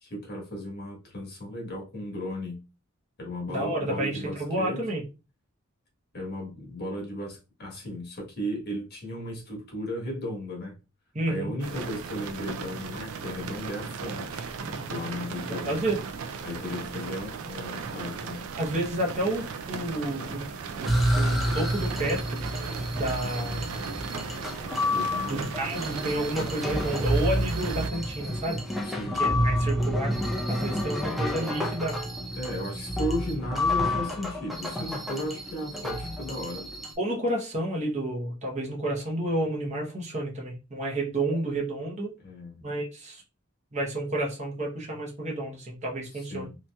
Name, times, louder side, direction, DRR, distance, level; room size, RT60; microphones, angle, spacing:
voice 1, 0.0-2.6 3.2-4.8 6.1-10.7 11.3-14.5 14.9-15.8 16.4-18.5 24.9-25.4 28.8-29.2 32.4-36.6 42.2-42.6 46.1-46.6, left 1 dB, 50° left, 1.1 m, -35 dB
voice 2, 3.5-5.0 11.1-11.5 15.4-16.0 18.6-20.4 20.8-20.9 21.1-22.4 22.9-23.7 25.2-28.6 29.1-30.1 30.5-32.0 37.0-42.1 42.6-43.2 43.7-46.5, right 1 dB, 35° right, 0.8 m, -30 dB
sound 1, 11.6-27.9, right 5 dB, 80° right, 0.4 m, -36 dB
sound 2, 20.9-36.9, left 1 dB, ahead, 0.5 m, -29 dB
2.9 x 2.7 x 2.2 m
head